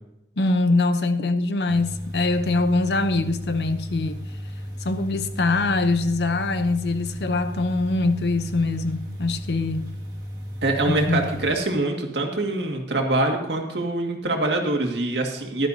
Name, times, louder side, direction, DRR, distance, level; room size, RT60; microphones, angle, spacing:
voice 1, 0.4-4.2 4.8-9.9 10.8-11.2, left 3 dB, 70° left, 0.7 m, -23 dB
sound 1, 1.7-11.5, equal, 20° right, 1.7 m, -35 dB
voice 2, 10.6-15.7, right 2 dB, 75° right, 2.0 m, -24 dB
16.0 x 12.0 x 2.8 m
head